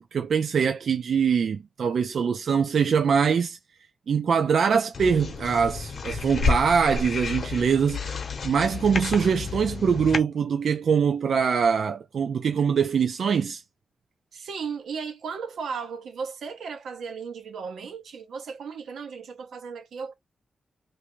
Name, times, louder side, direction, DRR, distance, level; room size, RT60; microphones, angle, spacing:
voice 1, 0.1-3.6 4.1-13.6, right 6 dB, 60° right, 0.4 m, -23 dB
sound 1, 4.9-10.2, left 4 dB, 50° left, 0.8 m, -30 dB
voice 2, 14.3-20.1, right 5 dB, 85° right, 0.9 m, -35 dB
3.3 x 2.6 x 3.1 m
wide cardioid pair, 160°, 0 cm